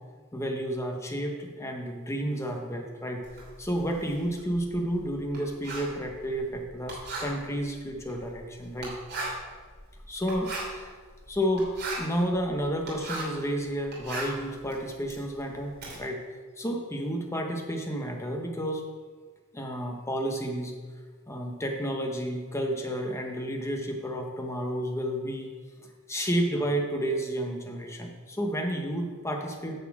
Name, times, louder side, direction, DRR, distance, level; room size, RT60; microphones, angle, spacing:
voice 1, 0.3-3.2 3.6-9.0 10.1-10.9 11.3-11.7 12.0-16.2 16.6-18.9 19.5-20.7 21.3-25.5 25.8-29.8, equal, 15° left, 2 dB, 1.0 m, -31 dB
Writing, 3.2-13.4 13.8-16.0, right 2 dB, 50° right, 2.8 m, -39 dB
9.8 x 4.2 x 7.2 m, 1.5 s
head